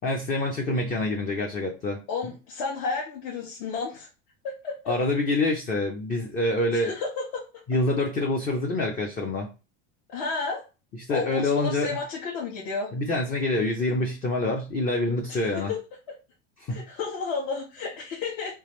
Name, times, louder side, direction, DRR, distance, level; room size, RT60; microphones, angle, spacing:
voice 1, 0.0-2.0 4.9-6.9 7.7-9.5 11.1-12.0 12.9-15.7 16.6-16.8, left 2 dB, 20° left, 1 dB, 0.4 m, -26 dB
voice 2, 2.1-4.1 4.4-4.9 6.7-7.4 10.1-10.6 11.1-12.9 15.3-15.8 16.7-18.6, left 4 dB, 60° left, -3 dB, 1.1 m, -32 dB
3.3 x 2.5 x 3.0 m, 0.31 s
supercardioid pair, 125°, 40 cm